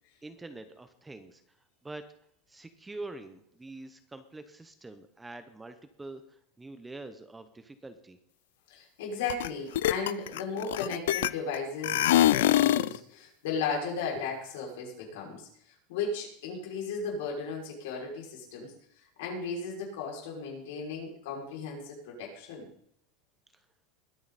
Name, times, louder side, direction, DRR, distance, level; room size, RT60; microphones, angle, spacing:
voice 1, 0.2-1.4 1.8-2.0 2.5-8.2 23.5-23.6, right 2 dB, 5° right, 9 dB, 0.8 m, -45 dB
voice 2, 8.7-22.7, left 4 dB, 70° left, -1 dB, 6.0 m, -36 dB
sound 1, 9.3-9.5 9.7-11.5 11.8-13.0, left 13 dB, 90° left, 0.5 m, -24 dB
21.5 x 9.5 x 4.2 m, 0.71 s
supercardioid pair, 170°, 0 cm